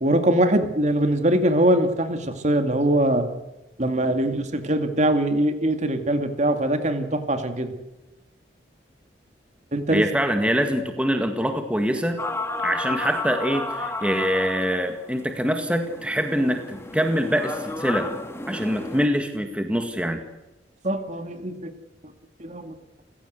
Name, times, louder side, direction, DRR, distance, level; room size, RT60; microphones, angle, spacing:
voice 1, 0.0-3.2 3.8-7.7 9.7-10.0 20.8-21.7 22.4-22.7, right 1 dB, 40° right, 7 dB, 2.3 m, -22 dB
voice 2, 9.9-12.2 12.6-18.1 18.5-20.2, equal, 5° right, 6 dB, 1.9 m, -24 dB
sound 1, 12.2-19.1, left 2 dB, 15° left, 1.8 m, -32 dB
29.5 x 16.0 x 8.1 m, 1.0 s
head